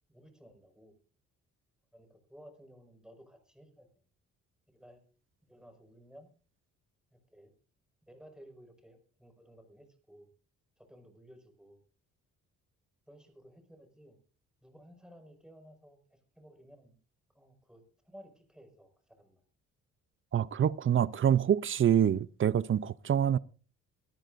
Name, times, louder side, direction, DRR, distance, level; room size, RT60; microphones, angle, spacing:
voice 1, 0.1-0.9 1.9-3.9 4.7-5.0 5.4-6.3 7.1-7.5 8.1-10.3 10.8-11.8 13.1-14.2 14.6-16.9 17.3-19.4, equal, ahead, 5.5 m, -56 dB
voice 2, 20.3-23.4, right 9 dB, 40° right, 0.6 m, -26 dB
23.5 x 14.0 x 2.6 m
cardioid pair, 90°, 30 cm